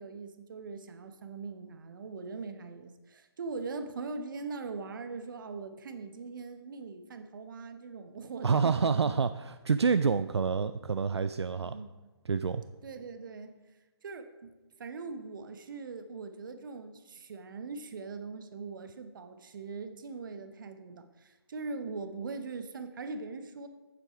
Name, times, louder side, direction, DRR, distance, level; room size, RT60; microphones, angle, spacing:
voice 1, 0.0-9.1 11.6-12.1 12.8-13.6 14.0-14.5 14.8-23.7, right 4 dB, 50° right, 9 dB, 1.0 m, -41 dB
voice 2, 8.4-11.8 12.3-12.6, right 5 dB, 80° right, 11 dB, 0.4 m, -27 dB
8.5 x 7.7 x 4.9 m, 1.1 s
figure-of-eight pair, 140°, 14 cm